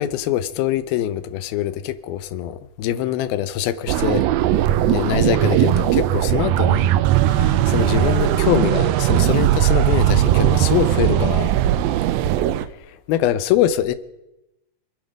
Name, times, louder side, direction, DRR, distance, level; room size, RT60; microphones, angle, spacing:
voice 1, 0.0-4.2 4.9-6.9 7.2-11.5 12.9-13.9, left 11 dB, 85° left, 2.6 m, -23 dB
sound 1, 3.9-12.7, right 13 dB, 85° right, 2.5 m, -18 dB
sound 2, 4.6-12.7, right 6 dB, 65° right, 2.2 m, -31 dB
26.5 x 9.6 x 5.2 m
omnidirectional pair, 4.2 m